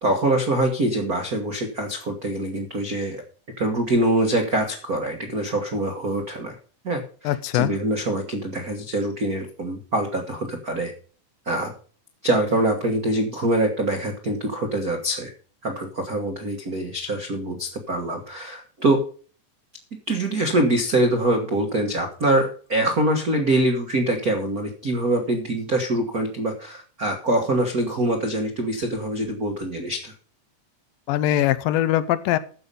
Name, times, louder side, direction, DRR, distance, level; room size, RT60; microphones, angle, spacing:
voice 1, 0.0-3.2 3.6-6.5 6.8-10.9 11.4-11.7 12.2-15.3 15.6-19.0 20.1-30.1, right 1 dB, 80° right, 3 dB, 0.8 m, -24 dB
voice 2, 7.3-7.7 31.1-32.4, left 13 dB, 80° left, 14 dB, 2.4 m, -21 dB
14.0 x 5.5 x 6.8 m, 0.42 s
omnidirectional pair, 4.2 m